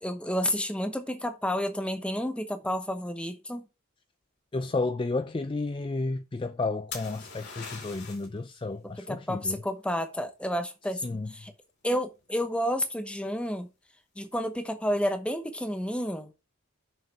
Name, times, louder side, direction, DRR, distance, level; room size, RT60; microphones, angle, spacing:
voice 1, 0.0-3.7 8.8-11.5 11.8-13.7 14.2-16.3, equal, 5° left, 0.9 m, -30 dB
voice 2, 4.5-9.6 11.0-11.3, left 3 dB, 25° left, 0.3 m, -32 dB
sound 1, 6.9-8.4 12.0-12.5, left 5 dB, 50° left, 2.8 m, -41 dB
6.8 x 6.6 x 4.6 m
head